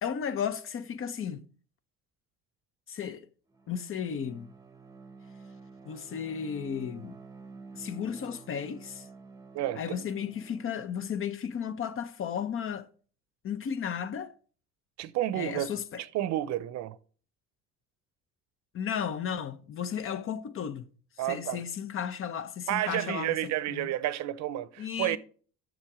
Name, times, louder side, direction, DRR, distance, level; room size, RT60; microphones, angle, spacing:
voice 1, 0.0-1.5 2.9-3.3 3.7-4.5 5.8-7.2 7.7-9.1 9.8-12.9 13.4-14.3 15.3-16.0 18.7-20.8 21.2-23.9 24.8-25.2, left 8 dB, 45° left, 0.7 m, -34 dB
Bowed string instrument, 3.5-11.2, right 4 dB, 10° right, 0.9 m, -49 dB
voice 2, 9.5-10.1 15.0-15.7 16.0-17.0 21.2-21.6 22.7-25.2, right 13 dB, 65° right, 0.6 m, -31 dB
7.3 x 6.1 x 4.9 m
supercardioid pair, 95°, 30 cm